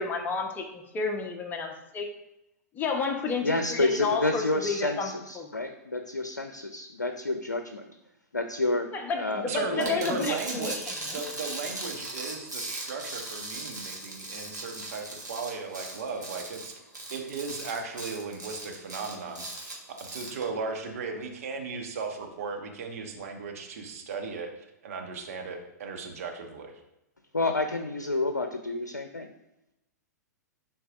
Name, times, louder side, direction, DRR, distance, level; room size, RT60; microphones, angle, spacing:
voice 1, 0.0-2.1 2.7-5.1 5.4-5.5 8.9-10.7 11.1-11.2, left 4 dB, 20° left, 3 dB, 1.1 m, -31 dB
voice 2, 3.4-7.9 8.3-8.9 9.2-9.9 27.3-29.3, left 2 dB, 80° left, 7 dB, 0.6 m, -29 dB
voice 3, 9.4-16.7 17.1-24.5 24.8-26.7, right 4 dB, 55° right, 2 dB, 1.3 m, -36 dB
sound 1, 9.8-20.4, right 2 dB, 85° right, 2.0 m, -38 dB
11.0 x 4.6 x 2.6 m, 0.89 s
figure-of-eight pair, 105°, 9 cm